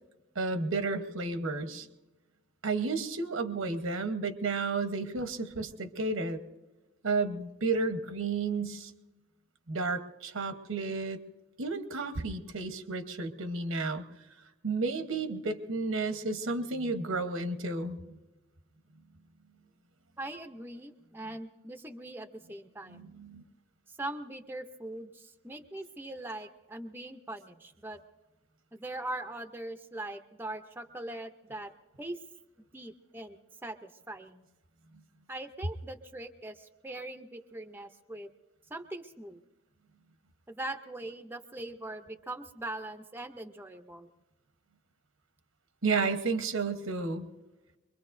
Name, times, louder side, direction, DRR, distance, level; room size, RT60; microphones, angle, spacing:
voice 1, 0.3-1.9 2.6-6.4 7.0-8.9 9.7-11.2 11.6-14.0 14.6-18.2 22.9-23.4 45.8-47.3, right 3 dB, 85° right, 8 dB, 1.1 m, -32 dB
voice 2, 20.2-23.1 24.0-28.0 28.7-31.7 32.0-32.2 32.6-33.4 33.6-34.4 35.3-38.3 38.7-39.4 40.5-44.1, right 1 dB, 10° right, 7 dB, 0.6 m, -41 dB
24.5 x 22.5 x 2.6 m, 1.1 s
head